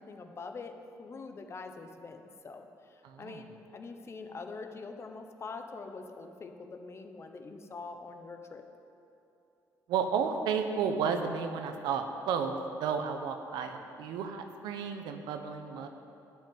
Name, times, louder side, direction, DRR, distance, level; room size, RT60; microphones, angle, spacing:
voice 1, 0.0-8.6, left 4 dB, 35° left, 6 dB, 1.0 m, -44 dB
voice 2, 3.0-3.4 9.9-15.9, right 6 dB, 85° right, 6 dB, 1.0 m, -32 dB
12.5 x 5.7 x 9.2 m, 2.8 s
cardioid pair, 100°, 7 cm